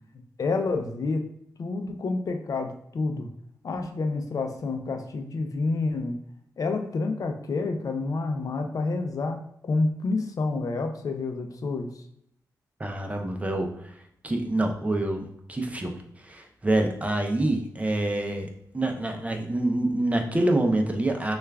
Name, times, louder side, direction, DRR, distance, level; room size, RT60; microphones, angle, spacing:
voice 1, 0.4-1.2 1.6-3.3 3.6-6.2 6.6-12.0, left 3 dB, 55° left, 5 dB, 0.5 m, -28 dB
voice 2, 12.8-13.9 14.2-21.3, right 1 dB, 20° right, 3 dB, 0.5 m, -26 dB
6.3 x 2.4 x 2.3 m, 0.71 s
cardioid pair, 90°, 7 cm